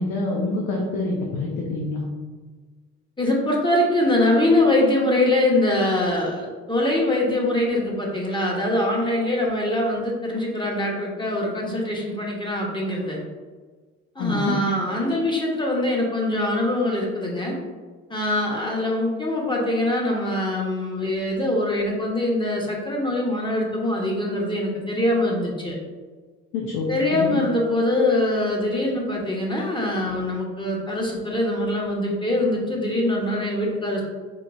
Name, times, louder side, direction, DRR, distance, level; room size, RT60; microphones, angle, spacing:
voice 1, 0.0-2.1 14.2-14.6 26.5-27.4, left 3 dB, 85° left, -1 dB, 0.7 m, -26 dB
voice 2, 3.2-13.2 14.1-17.6 18.1-25.8 26.9-34.0, left 1 dB, 15° left, -2 dB, 1.1 m, -23 dB
4.6 x 2.9 x 2.6 m, 1.4 s
supercardioid pair, 75°, 32 cm